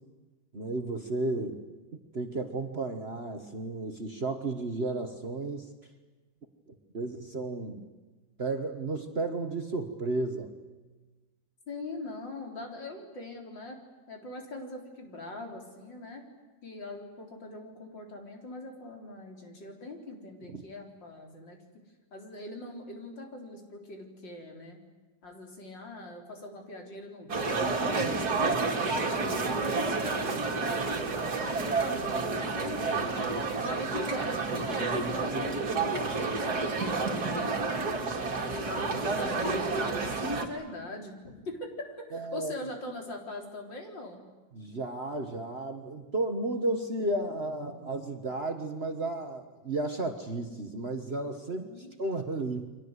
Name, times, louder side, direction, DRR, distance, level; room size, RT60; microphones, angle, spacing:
voice 1, 0.5-1.6 2.1-5.7 6.7-7.8 8.4-10.5 20.5-20.6 42.1-42.5 44.5-52.8, right 2 dB, 35° right, 5 dB, 1.6 m, -33 dB
voice 2, 11.7-13.8 14.1-16.2 16.6-21.6 22.1-24.8 25.2-28.9 29.5-33.1 33.6-37.9 38.4-44.2 51.5-51.9, left 2 dB, 80° left, 2 dB, 4.7 m, -42 dB
sound 1, 27.3-40.5, right 3 dB, 55° right, 2.7 m, -30 dB
30.0 x 24.0 x 8.2 m, 1.3 s
omnidirectional pair, 1.9 m